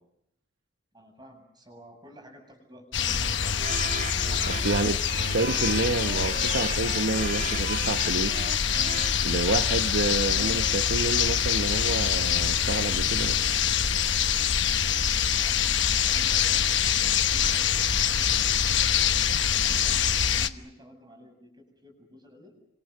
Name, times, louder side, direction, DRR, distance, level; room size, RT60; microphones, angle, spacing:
voice 1, 0.9-3.6 15.3-18.3 18.9-22.5, equal, 20° right, 4 dB, 7.9 m, -51 dB
sound 1, 2.9-20.5, left 8 dB, 65° left, 1.1 m, -25 dB
sound 2, 3.6-10.8, right 4 dB, 45° right, 1.8 m, -37 dB
voice 2, 4.5-5.0 5.3-8.5 9.2-13.4, right 3 dB, 65° right, 7 dB, 1.0 m, -29 dB
29.5 x 26.0 x 6.7 m, 0.81 s
head